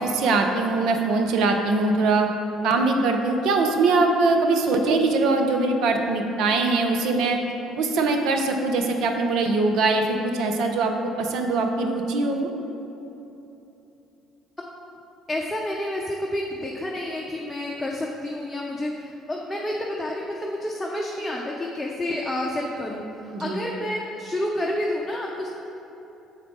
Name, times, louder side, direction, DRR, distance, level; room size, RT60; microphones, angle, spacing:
voice 1, 0.0-2.3 2.6-7.4 7.8-12.5 23.3-23.6, right 3 dB, 65° right, 4 dB, 0.6 m, -22 dB
voice 2, 15.3-25.5, left 1 dB, 15° left, -2 dB, 0.7 m, -29 dB
6.3 x 4.5 x 3.8 m, 2.9 s
hypercardioid pair, 55°, 0 cm